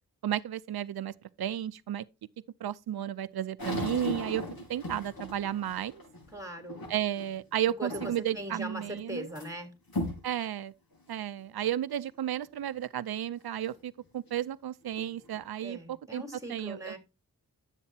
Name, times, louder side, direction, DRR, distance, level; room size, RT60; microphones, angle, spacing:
voice 1, 0.2-2.0 2.6-4.4 4.7-6.0 6.9-9.3 10.2-10.7 11.1-16.2 16.5-16.9, right 11 dB, 90° right, 0.5 m, -33 dB
sound 1, 3.6-7.4 7.9-8.4 8.8-9.5 9.9-10.3 10.9-11.0 11.7-11.8 14.3-14.4 14.9-15.5, left 1 dB, 75° left, 5.5 m, -37 dB
voice 2, 6.3-6.8 7.8-9.7 15.6-17.0, right 1 dB, 10° right, 3.5 m, -40 dB
12.0 x 8.2 x 2.8 m
wide cardioid pair, 70°, 36 cm